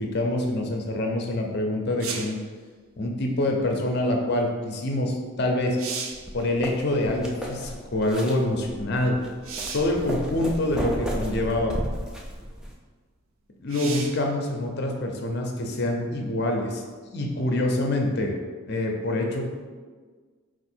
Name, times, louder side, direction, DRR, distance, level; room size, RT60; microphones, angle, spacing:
voice 1, 0.0-2.4 3.0-5.8 6.3-9.1 9.7-11.8 13.6-16.8 17.1-18.3 18.7-19.4, left 1 dB, 50° left, 2 dB, 0.6 m, -26 dB
sound 1, 2.0-2.4 5.1-5.2 5.6-6.3 9.4-10.0 11.0-11.1 13.7-14.3 17.9-18.0, right 5 dB, 70° right, 0.5 m, -34 dB
sound 2, 6.1-12.7, equal, 5° right, 0.3 m, -34 dB
4.4 x 2.5 x 4.3 m, 1.5 s
head